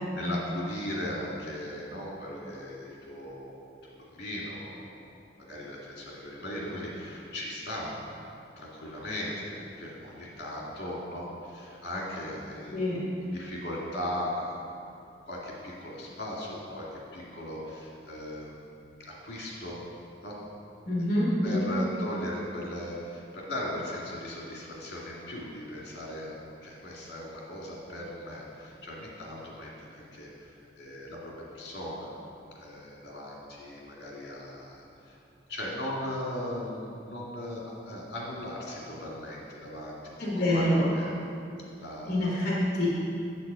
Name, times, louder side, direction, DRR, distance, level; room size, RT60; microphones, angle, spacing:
voice 1, 0.2-5.0 5.4-8.0 8.6-13.0 13.2-14.6 15.3-18.5 19.0-19.9 20.2-20.4 21.4-32.2 32.6-35.2 35.5-41.1 41.8-42.3, left 1 dB, 65° left, -4 dB, 2.2 m, -38 dB
voice 2, 20.9-21.8 40.2-40.9 42.1-42.9, left 1 dB, 45° left, -6 dB, 1.6 m, -26 dB
8.4 x 7.4 x 5.1 m, 2.6 s
head